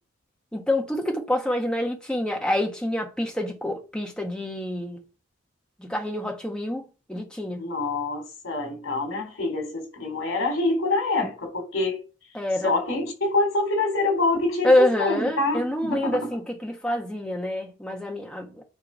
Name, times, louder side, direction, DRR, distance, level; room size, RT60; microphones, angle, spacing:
voice 1, 0.5-5.0 5.8-7.6 12.3-12.7 14.6-18.6, left 1 dB, 5° left, 1.5 m, -26 dB
voice 2, 7.6-12.0 12.6-16.2, left 2 dB, 80° left, 4.1 m, -26 dB
10.0 x 3.7 x 6.3 m
head